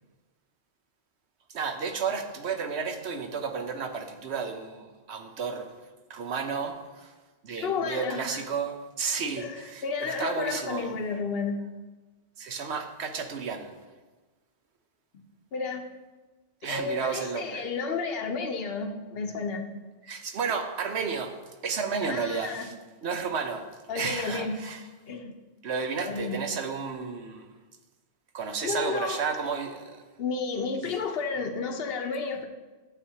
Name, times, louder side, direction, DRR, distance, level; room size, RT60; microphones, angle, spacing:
voice 1, 1.5-5.7 6.1-7.1 7.4-10.9 12.4-13.8 16.6-17.7 20.0-22.7 23.0-23.7 23.9-24.8 25.6-27.5 28.3-30.0, right 5 dB, 70° right, 6 dB, 1.1 m, -32 dB
voice 2, 7.6-8.4 9.4-11.6 15.5-15.9 16.7-19.7 22.0-22.7 23.9-24.5 25.1-25.3 26.1-26.4 28.6-29.2 30.2-32.5, left 5 dB, 60° left, 4 dB, 1.0 m, -32 dB
11.5 x 7.7 x 2.8 m, 1.2 s
omnidirectional pair, 1.2 m